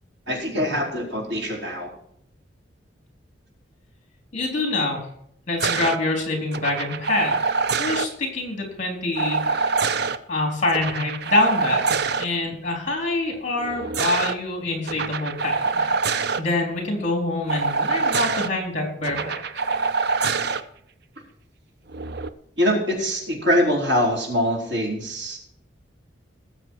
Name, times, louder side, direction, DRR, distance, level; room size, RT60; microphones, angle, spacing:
voice 1, 0.3-1.9 22.6-25.4, equal, 80° right, -1 dB, 4.3 m, -23 dB
voice 2, 4.3-5.1 5.5-7.4 7.8-9.8 10.3-15.9 16.4-19.4, left 2 dB, 40° left, 1 dB, 3.7 m, -25 dB
sound 1, 5.6-6.0 6.5-8.1 9.2-10.2 10.7-12.3 13.6-14.3 14.9-16.4 17.5-18.5 19.0-20.6 21.9-22.3, right 4 dB, 55° right, 0.6 m, -25 dB
18.5 x 7.5 x 4.7 m, 0.69 s
head